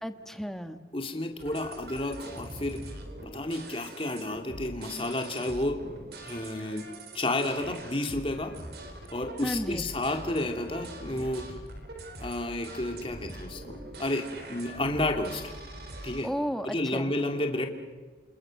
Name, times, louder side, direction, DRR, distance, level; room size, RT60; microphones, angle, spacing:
voice 1, 0.0-0.8 9.4-9.9 16.2-17.1, equal, ahead, 7 dB, 1.3 m, -33 dB
voice 2, 0.9-2.8 3.2-5.9 6.2-6.9 7.1-8.6 9.1-11.5 12.2-15.5 16.0-16.3 16.6-17.7, left 1 dB, 30° left, 4 dB, 2.8 m, -31 dB
sound 1, 1.4-16.2, right 1 dB, 60° right, 4.0 m, -43 dB
28.5 x 28.0 x 6.6 m, 1.3 s
head